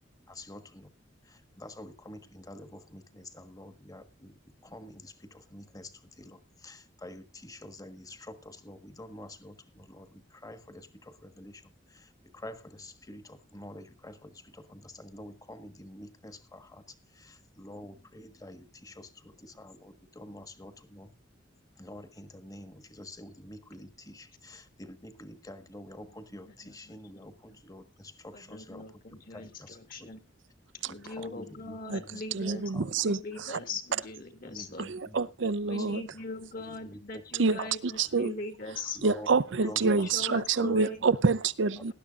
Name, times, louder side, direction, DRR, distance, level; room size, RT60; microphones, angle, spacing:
voice 1, 0.3-0.9 1.2-21.1 21.8-30.1 30.9-32.2 32.7-32.9 33.3-33.4 34.4-35.2 35.8-35.9 36.6-37.2 38.0-38.2 38.9-40.0 40.6-41.1 41.8-41.9, left 1 dB, 20° left, 1.4 m, -48 dB
voice 2, 26.6-27.3 28.3-30.2 30.9-34.8 35.7-39.0 39.8-41.1, left 3 dB, 50° left, 2.2 m, -41 dB
voice 3, 32.3-33.6 34.8-36.0 37.4-38.3 39.0-41.9, right 4 dB, 75° right, 0.6 m, -27 dB
19.0 x 11.5 x 2.5 m
head